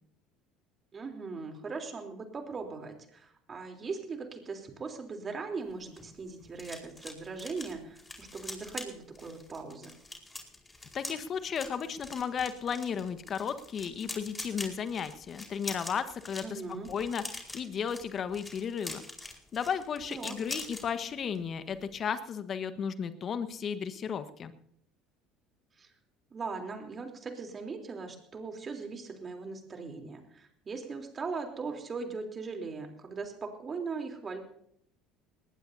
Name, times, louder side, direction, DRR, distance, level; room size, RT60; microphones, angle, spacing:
voice 1, 0.9-9.9 16.4-16.9 20.1-20.4 25.8-25.9 26.3-34.4, right 4 dB, 30° right, 4 dB, 3.5 m, -39 dB
sound 1, 5.7-20.9 21.2-21.5 21.7-22.0, left 2 dB, 15° left, 4.4 m, -44 dB
voice 2, 10.9-16.6 16.9-19.0 19.5-24.5, left 7 dB, 40° left, 12 dB, 1.3 m, -34 dB
20.0 x 19.0 x 2.8 m, 0.70 s
hypercardioid pair, 65°, 0 cm